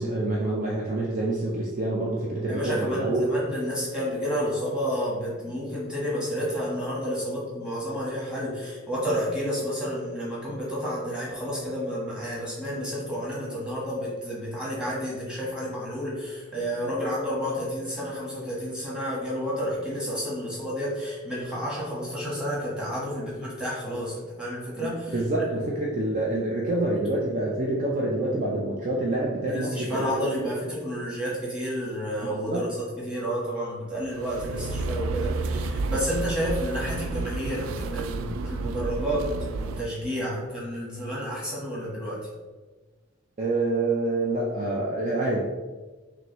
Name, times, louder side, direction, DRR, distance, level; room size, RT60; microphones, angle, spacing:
voice 1, 0.0-3.3 24.8-30.5 32.2-32.6 34.5-34.6 43.4-45.4, right 2 dB, 40° right, -4 dB, 0.6 m, -27 dB
voice 2, 2.5-25.1 29.5-32.7 33.0-39.3 39.6-42.2, equal, 5° right, -6 dB, 1.4 m, -30 dB
sound 1, 34.0-39.8, right 3 dB, 85° right, 0.3 m, -31 dB
6.0 x 2.6 x 3.0 m, 1.3 s
head